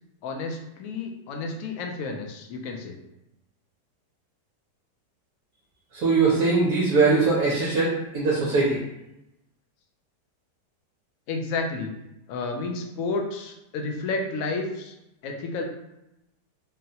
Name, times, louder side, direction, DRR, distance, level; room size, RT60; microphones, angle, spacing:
voice 1, 0.2-3.0 11.3-11.9 12.3-14.9 15.2-15.6, left 3 dB, 70° left, 2 dB, 0.8 m, -31 dB
voice 2, 5.9-8.8, right 4 dB, 70° right, -6 dB, 1.0 m, -21 dB
3.8 x 2.1 x 2.7 m, 0.89 s
omnidirectional pair, 1.8 m